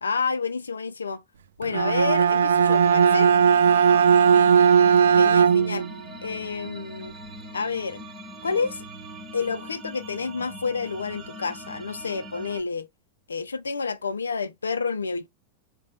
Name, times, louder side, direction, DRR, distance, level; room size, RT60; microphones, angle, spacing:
voice 1, 0.0-1.2 1.6-3.3 5.2-5.9 6.2-7.2 7.5-8.0 8.4-8.8 9.3-12.9 13.3-15.3, left 5 dB, 75° left, 0.4 m, -29 dB
Bowed string instrument, 1.6-5.9, right 7 dB, 65° right, 0.4 m, -18 dB
sound 1, 2.7-12.6, right 1 dB, 15° right, 1.1 m, -42 dB
4.0 x 2.2 x 3.9 m
figure-of-eight pair, 90°, 0 cm